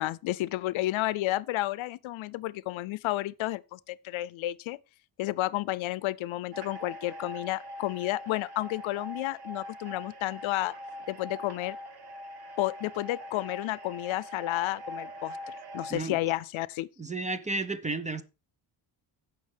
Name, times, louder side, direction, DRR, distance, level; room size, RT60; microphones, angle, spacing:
voice 1, 0.0-4.8 5.2-10.7 11.1-11.8 12.6-16.9, left 16 dB, 85° left, 0.6 m, -31 dB
sound 1, 6.5-15.9, equal, 55° right, 1.6 m, -42 dB
voice 2, 17.0-18.2, right 3 dB, 15° right, 0.4 m, -32 dB
16.0 x 5.9 x 3.4 m
wide cardioid pair, 170°, 46 cm